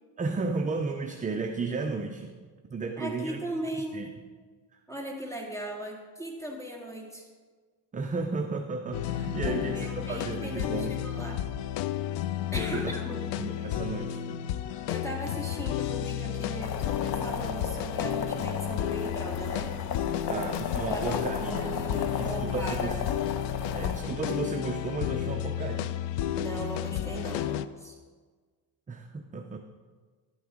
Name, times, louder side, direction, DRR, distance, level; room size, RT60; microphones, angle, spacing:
voice 1, 0.2-2.3 2.7-3.4 3.9-4.1 4.7-4.8 7.9-10.9 12.6-12.9 13.4-14.2 20.3-21.8 22.2-23.0 23.7-25.9 28.9-29.6, right 4 dB, 20° right, 4 dB, 0.5 m, -33 dB
voice 2, 3.0-4.0 4.9-7.3 9.4-11.4 12.5-13.3 14.9-19.7 20.2-20.4 20.8-23.0 26.4-28.0, right 1 dB, 5° left, 0 dB, 2.0 m, -38 dB
sound 1, 8.9-27.7, left 11 dB, 75° left, 0.5 m, -32 dB
sound 2, 16.6-24.0, left 6 dB, 60° left, 1.0 m, -35 dB
11.5 x 9.4 x 3.7 m, 1.5 s
cardioid pair, 120°, 42 cm